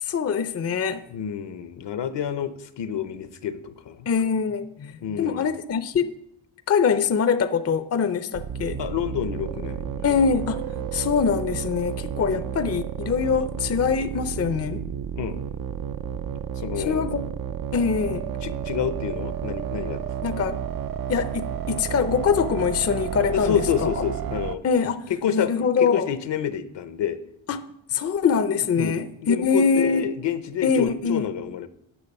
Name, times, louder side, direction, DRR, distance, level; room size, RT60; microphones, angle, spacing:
voice 1, 0.0-1.1 4.1-6.1 6.7-8.8 10.0-10.6 10.9-14.9 16.8-17.2 17.7-18.3 20.2-20.6 21.1-24.0 24.6-26.1 27.5-27.6 27.9-30.1 30.6-31.3, left 6 dB, 30° left, 0.6 m, -23 dB
voice 2, 1.1-4.0 5.0-5.6 8.8-10.0 12.3-12.4 15.2-15.4 16.6-17.0 18.4-20.0 23.3-24.6 25.1-27.2 28.8-31.7, left 9 dB, 60° left, 0.8 m, -28 dB
sound 1, 8.3-24.6, right 8 dB, 45° right, 0.5 m, -31 dB
10.0 x 6.4 x 5.3 m
cardioid pair, 85°, 49 cm